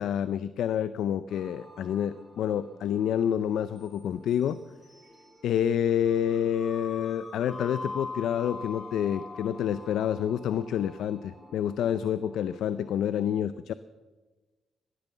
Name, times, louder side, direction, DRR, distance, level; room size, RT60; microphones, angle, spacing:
voice 1, 0.0-4.6 5.4-13.7, left 9 dB, 80° left, 15 dB, 0.4 m, -28 dB
sound 1, 1.3-12.9, left 3 dB, 25° left, 3.3 m, -44 dB
16.0 x 11.0 x 6.8 m, 1.3 s
cardioid pair, 95°, 0 cm